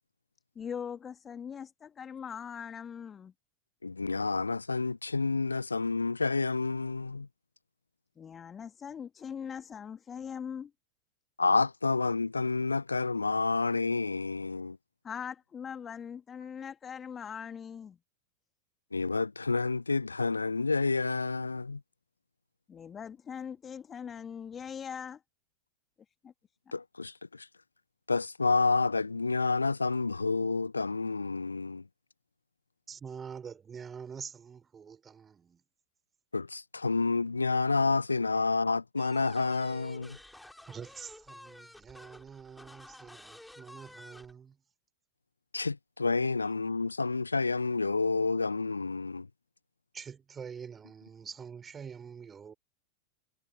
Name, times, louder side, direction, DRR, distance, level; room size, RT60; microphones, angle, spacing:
voice 1, 0.6-3.3 8.2-10.7 15.0-18.0 22.7-25.2 26.2-26.3, left 7 dB, 20° left, 2.1 m, -41 dB
voice 2, 3.8-7.3 11.4-14.8 18.9-21.8 26.7-27.5 28.1-31.8 36.3-40.2 45.5-49.3, left 3 dB, 80° left, 0.8 m, -29 dB
voice 3, 32.9-35.6 40.7-44.6 49.9-52.5, right 6 dB, 20° right, 5.9 m, -46 dB
sound 1, 39.0-44.3, left 1 dB, 5° left, 6.6 m, -51 dB
figure-of-eight pair, 90°, 0 cm